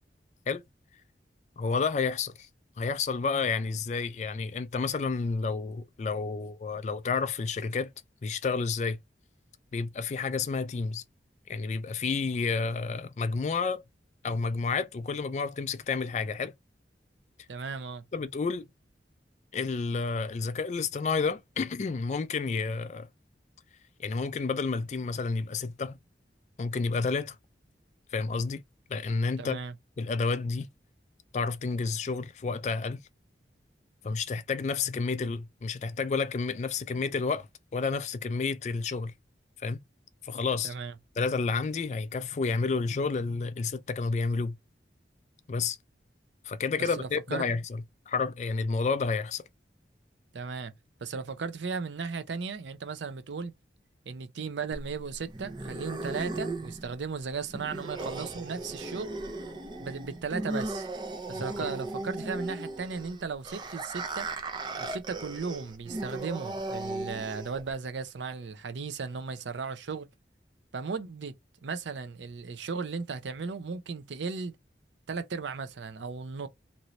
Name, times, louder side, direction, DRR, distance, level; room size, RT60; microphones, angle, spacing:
voice 1, 1.6-2.5 2.8-7.9 8.2-9.0 9.7-11.0 11.5-13.8 14.2-16.5 18.1-18.7 19.5-23.1 24.0-26.0 26.6-27.4 28.1-28.6 28.9-29.6 30.0-30.7 31.3-33.0 34.0-37.5 37.7-39.1 39.6-39.8 40.2-40.7 41.2-44.6 45.5-45.8 46.4-49.4, left 4 dB, 40° left, 0.3 m, -30 dB
voice 2, 17.5-18.0 29.4-29.7 40.6-40.9 46.8-47.5 50.3-50.7 51.0-53.5 54.1-59.2 59.8-60.9 61.3-64.3 64.8-70.1 70.7-71.3 71.6-74.6 75.1-76.5, right 5 dB, 85° right, 0.5 m, -36 dB
sound 1, 54.7-67.7, right 2 dB, 25° right, 0.5 m, -37 dB
3.0 x 2.7 x 2.9 m
head